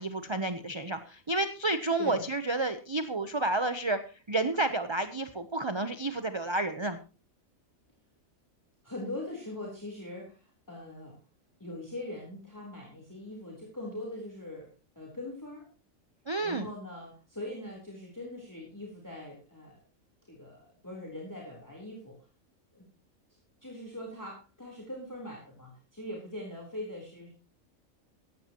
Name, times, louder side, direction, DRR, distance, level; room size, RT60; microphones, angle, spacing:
voice 1, 0.0-4.0 4.3-7.0 16.3-16.7, right 2 dB, 25° right, 9 dB, 0.8 m, -30 dB
voice 2, 8.8-11.1 11.6-14.7 15.0-15.7 16.4-19.8 20.3-22.2 22.7-22.9 23.6-27.3, left 1 dB, 15° left, -2 dB, 3.9 m, -41 dB
16.5 x 14.0 x 3.0 m, 0.34 s
omnidirectional pair, 1.4 m